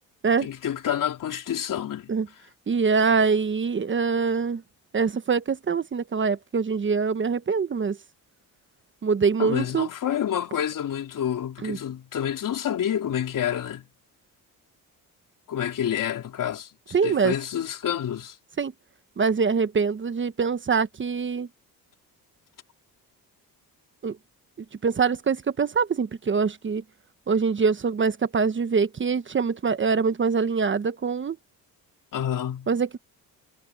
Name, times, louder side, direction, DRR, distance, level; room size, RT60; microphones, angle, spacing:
voice 1, 0.4-2.1 9.4-13.8 15.5-18.4 32.1-32.7, left 10 dB, 60° left, 4.1 m, -28 dB
voice 2, 2.7-4.6 4.9-8.0 9.0-9.9 11.6-11.8 16.9-17.3 18.6-18.7 19.2-21.5 24.0-24.2 24.8-26.8 27.3-31.4 32.7-33.0, right 5 dB, 35° right, 1.1 m, -24 dB
cardioid pair, 105°, 36 cm